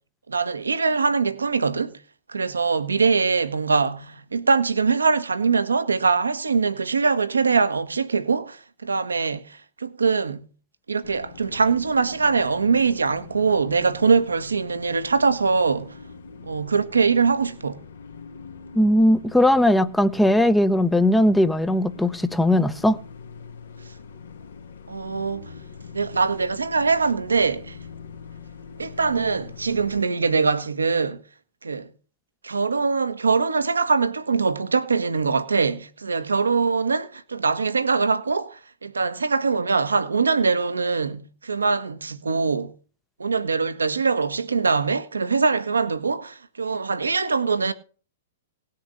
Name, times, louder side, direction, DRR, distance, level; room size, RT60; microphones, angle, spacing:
voice 1, 0.3-2.0 2.3-10.5 10.9-15.9 16.5-17.8 24.9-25.4 25.9-27.8 28.8-31.2 31.6-31.9 32.4-42.7 43.2-47.7, right 4 dB, 80° right, 1.2 m, -23 dB
sound 1, 11.0-30.0, left 5 dB, 70° left, 2.1 m, -43 dB
voice 2, 18.7-23.0, left 1 dB, 5° left, 0.8 m, -19 dB
18.0 x 6.7 x 6.6 m
figure-of-eight pair, 110°, 0 cm